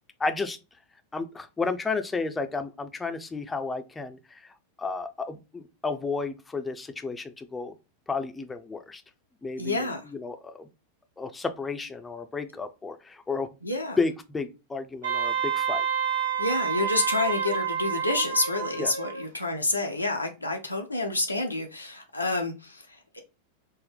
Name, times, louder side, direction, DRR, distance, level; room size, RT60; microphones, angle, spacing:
voice 1, 0.2-0.6 1.1-7.8 8.1-9.0 9.4-10.7 11.2-13.5 14.0-15.8 18.8-18.9, left 4 dB, 10° left, 0.4 m, -32 dB
voice 2, 9.6-10.0 13.6-14.0 16.4-23.2, left 2 dB, 85° left, 0.4 m, -29 dB
Wind instrument woodwind instrument, 15.0-19.2, right 8 dB, 75° right, 0.9 m, -28 dB
4.1 x 2.0 x 3.3 m
figure-of-eight pair, 90°, 0 cm